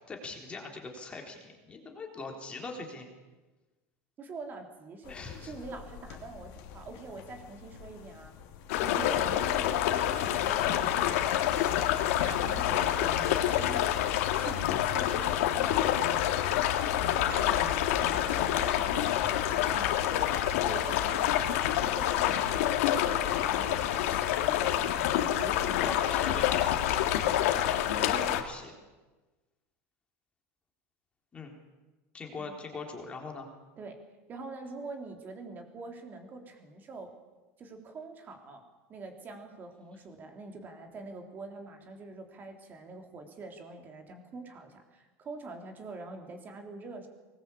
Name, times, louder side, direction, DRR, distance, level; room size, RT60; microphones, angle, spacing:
voice 1, 0.1-3.1 5.1-5.5 12.3-12.6 25.8-27.0 28.2-28.7 31.3-31.5 32.1-33.5, left 3 dB, 15° left, 2 dB, 3.9 m, -42 dB
voice 2, 4.2-8.4 8.8-11.4 12.2-13.1 13.4-14.0 14.3-15.9 17.1-19.2 19.5-20.1 20.6-26.5 27.2-27.4 27.9-28.4 32.5-32.6 33.8-34.0 34.3-37.1 37.6-47.1, right 3 dB, 25° right, 4 dB, 3.7 m, -44 dB
sound 1, 5.0-22.7, left 8 dB, 55° left, 2.9 m, -46 dB
sound 2, 8.7-28.4, left 12 dB, 80° left, 2.3 m, -27 dB
sound 3, 10.6-11.1 11.6-12.0 12.6-14.0 14.3-14.9 15.3-16.4 16.9-19.3 19.6-21.5, equal, 70° right, 6.1 m, -49 dB
23.5 x 20.0 x 8.6 m, 1.2 s
supercardioid pair, 160°, 7 cm